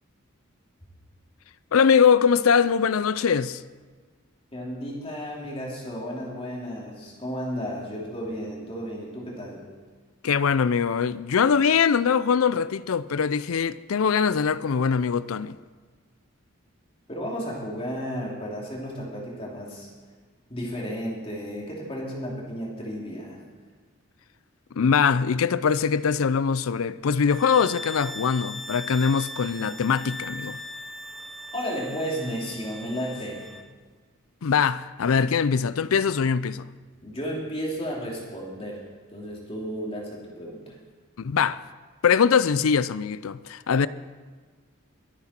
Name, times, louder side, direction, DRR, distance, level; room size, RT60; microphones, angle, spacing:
voice 1, 1.7-3.6 10.2-15.6 24.8-30.6 34.4-36.6 41.2-41.6 42.0-43.9, left 6 dB, 85° left, 0.5 m, -22 dB
voice 2, 4.5-9.6 17.1-19.9 20.5-23.4 31.5-33.4 37.0-38.8 39.1-40.7, equal, 25° left, 2.9 m, -33 dB
sound 1, 27.3-33.7, equal, ahead, 0.8 m, -39 dB
22.0 x 9.8 x 4.4 m
head